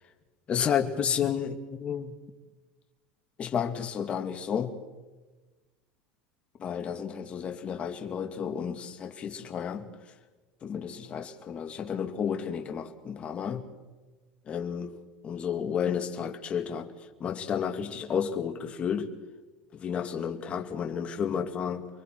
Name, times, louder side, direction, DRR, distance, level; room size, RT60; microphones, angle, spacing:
voice 1, 0.5-2.1 3.4-4.8 6.6-9.9 10.6-13.6 14.5-14.9 15.2-16.9 17.2-19.1 19.7-21.9, left 7 dB, 25° left, 2.2 m, -31 dB
30.0 x 22.5 x 4.7 m
supercardioid pair, 145°, 4 cm